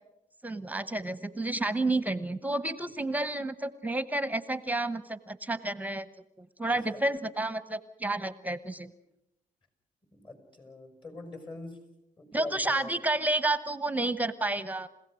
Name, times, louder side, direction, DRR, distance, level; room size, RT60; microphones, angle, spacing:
voice 1, 0.4-6.1 6.4-8.9 12.3-14.9, right 2 dB, 10° right, 14 dB, 1.0 m, -30 dB
voice 2, 10.1-11.8 12.2-12.9, left 2 dB, 30° left, 8 dB, 5.7 m, -43 dB
29.5 x 16.5 x 6.3 m, 0.85 s
cardioid pair, 90°, 15 cm